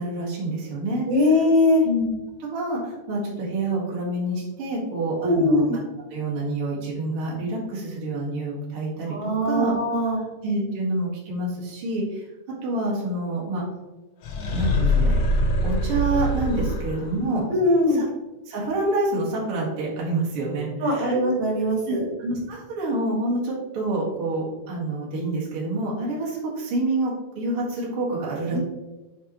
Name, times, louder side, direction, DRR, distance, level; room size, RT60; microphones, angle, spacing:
voice 1, 0.0-1.1 1.8-2.1 2.4-5.6 6.1-9.7 10.4-12.3 12.6-13.6 14.5-15.2 15.6-17.4 18.0-18.1 18.5-21.2 21.9-28.6, right 2 dB, 50° right, -5 dB, 2.5 m, -27 dB
voice 2, 1.1-1.9 5.2-5.8 9.1-10.2 17.5-18.0 20.8-22.0 28.5-28.6, left 1 dB, 75° right, -3 dB, 3.0 m, -21 dB
sound 1, 14.2-17.2, left 1 dB, 60° left, 1.3 m, -23 dB
8.6 x 4.5 x 3.0 m, 1.1 s
omnidirectional pair, 3.4 m